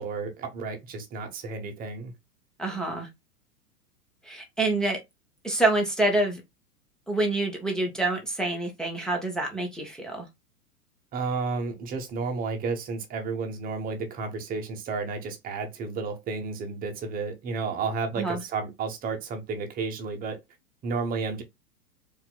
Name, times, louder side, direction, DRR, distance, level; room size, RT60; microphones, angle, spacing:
voice 1, 0.0-2.1 11.1-20.4 20.8-21.4, right 4 dB, 20° right, 1.0 m, -32 dB
voice 2, 2.6-3.1 4.2-5.0 5.4-6.4 7.1-10.3 18.2-18.4, right 2 dB, ahead, 0.7 m, -27 dB
4.4 x 3.6 x 2.2 m
figure-of-eight pair, 105°, 48 cm